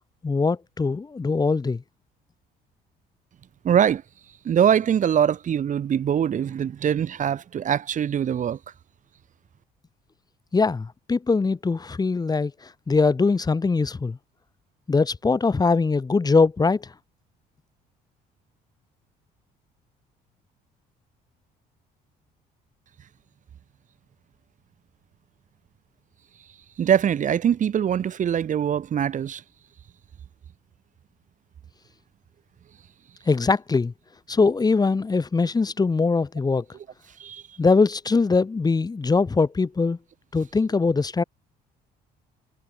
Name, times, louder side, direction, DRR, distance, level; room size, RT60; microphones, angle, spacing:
voice 1, 0.2-1.8 10.5-14.2 14.9-16.9 33.3-33.9 34.3-36.6 37.6-40.0 40.3-41.2, left 4 dB, 25° left, 4.4 m, -22 dB
voice 2, 3.6-4.0 4.4-8.6 26.8-29.4 37.2-37.6, right 9 dB, 50° right, 4.0 m, -23 dB
cardioid pair, 110°, 17 cm